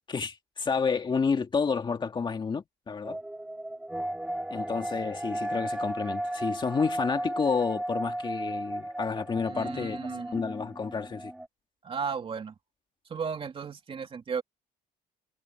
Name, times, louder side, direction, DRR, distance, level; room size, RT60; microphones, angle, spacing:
voice 1, 0.1-3.2 4.5-10.0 10.3-11.3, left 5 dB, 25° left, 2.3 m, -30 dB
sound 1, 3.0-11.5, right 1 dB, 5° right, 0.7 m, -35 dB
voice 2, 9.5-10.4 11.8-12.5 13.1-14.4, right 6 dB, 30° right, 3.1 m, -35 dB
cardioid pair, 150°, 19 cm